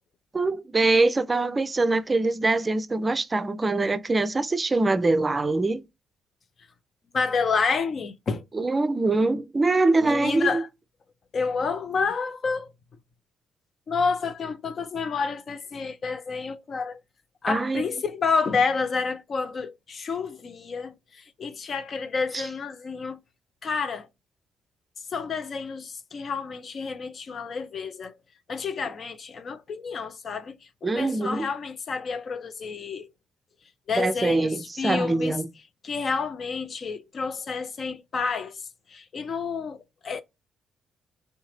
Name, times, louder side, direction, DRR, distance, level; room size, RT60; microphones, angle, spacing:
voice 1, 0.3-5.8 8.5-10.6 17.5-17.8 22.3-22.5 30.8-31.5 34.0-35.5, right 3 dB, 30° right, 0.4 m, -23 dB
voice 2, 7.1-8.4 10.0-10.7 11.3-12.7 13.9-17.0 17.4-23.2 23.6-24.1 25.1-28.1 28.5-30.6 30.8-33.1 33.9-35.4 35.8-38.6 38.9-39.8 40.0-40.2, left 5 dB, 50° left, 0.5 m, -29 dB
3.2 x 2.7 x 3.1 m
figure-of-eight pair, 40°, 0 cm